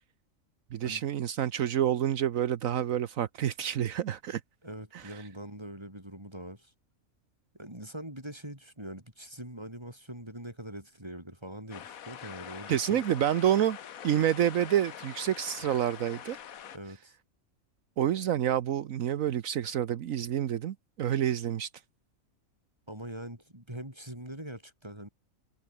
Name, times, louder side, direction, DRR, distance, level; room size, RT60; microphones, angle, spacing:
voice 1, 0.7-4.4 4.9-5.2 12.7-13.8 14.0-16.4 18.0-21.7, right 10 dB, 75° right, 1.2 m, -28 dB
voice 2, 4.6-6.7 7.6-13.0 16.7-17.1 22.9-25.1, right 1 dB, 20° right, 5.9 m, -43 dB
sound 1, 11.7-16.8, left 9 dB, 80° left, 1.5 m, -45 dB
omnidirectional pair, 1.4 m